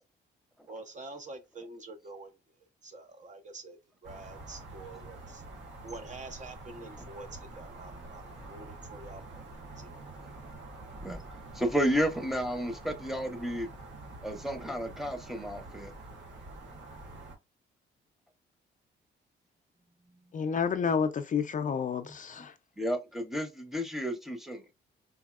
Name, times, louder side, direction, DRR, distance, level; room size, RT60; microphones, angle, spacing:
voice 1, 0.7-2.3 2.8-5.4 5.8-9.4 9.8-10.1, right 2 dB, 40° right, 0.8 m, -46 dB
sound 1, 4.0-17.3, right 2 dB, 65° right, 1.6 m, -46 dB
voice 2, 11.5-13.7 14.2-15.9 22.8-24.7, equal, ahead, 0.9 m, -32 dB
voice 3, 20.3-22.5, left 6 dB, 40° left, 0.5 m, -30 dB
4.1 x 2.8 x 2.4 m
cardioid pair, 90°, 20 cm